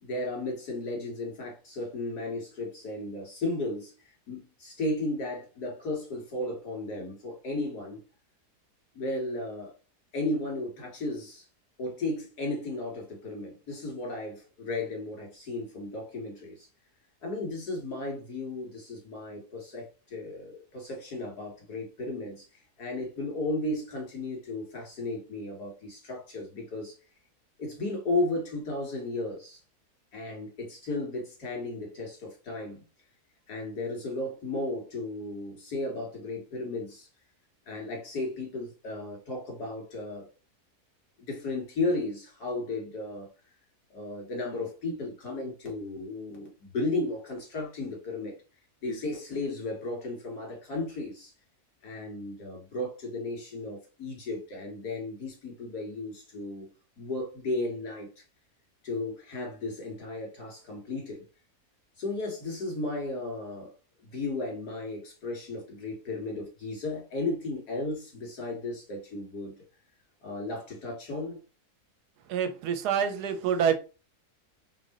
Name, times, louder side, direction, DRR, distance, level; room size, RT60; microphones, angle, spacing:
voice 1, 0.0-8.0 8.9-9.7 10.1-11.4 11.8-16.7 17.2-22.4 22.8-27.0 27.6-29.6 30.1-32.8 33.5-37.1 37.7-40.3 41.3-43.3 43.9-48.4 48.8-51.3 51.8-56.7 57.0-58.1 58.8-61.2 62.0-63.7 64.0-69.6 70.2-71.4, left 2 dB, 70° left, 2.4 m, -34 dB
voice 2, 72.3-73.7, right 8 dB, 85° right, 1.2 m, -26 dB
4.0 x 3.2 x 3.8 m
omnidirectional pair, 1.7 m